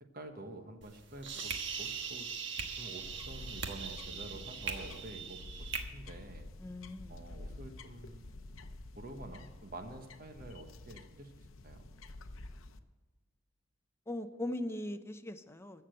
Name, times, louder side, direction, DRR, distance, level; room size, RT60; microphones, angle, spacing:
voice 1, 0.0-2.3 2.8-6.5 7.1-8.4 9.0-11.9, right 2 dB, 45° right, 6 dB, 1.1 m, -48 dB
sound 1, 0.8-5.8, right 6 dB, 60° right, 1.3 m, -40 dB
sound 2, 3.0-12.8, left 2 dB, 80° left, 0.8 m, -49 dB
voice 2, 6.6-7.2 14.1-15.8, left 1 dB, 10° left, 9 dB, 0.6 m, -40 dB
14.5 x 6.8 x 7.6 m, 1.2 s
head